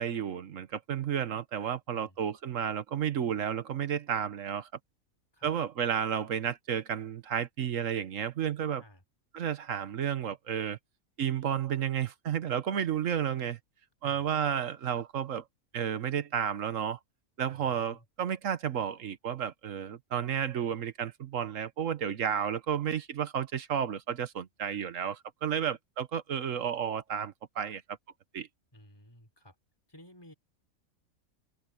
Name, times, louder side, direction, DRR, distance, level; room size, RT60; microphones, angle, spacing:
voice 1, 0.0-4.7 5.4-8.8 9.3-10.8 11.2-13.6 14.0-15.4 15.7-17.0 17.4-27.8 28.3-28.5, right 8 dB, 65° right, 1.3 m, -32 dB
voice 2, 17.5-18.0 28.7-29.5 29.9-30.3, left 1 dB, 15° left, 4.6 m, -55 dB
omnidirectional pair, 1.5 m